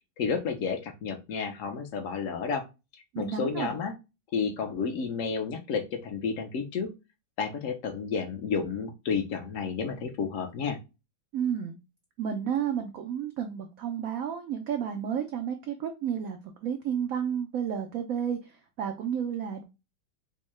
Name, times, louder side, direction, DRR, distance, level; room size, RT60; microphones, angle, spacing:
voice 1, 0.2-2.6 3.2-3.9 4.3-6.9 7.4-10.8, left 5 dB, 60° left, 6 dB, 0.9 m, -31 dB
voice 2, 3.1-3.7 11.3-11.8 12.2-19.6, right 8 dB, 80° right, 5 dB, 0.7 m, -31 dB
4.5 x 2.1 x 3.1 m, 0.26 s
omnidirectional pair, 2.0 m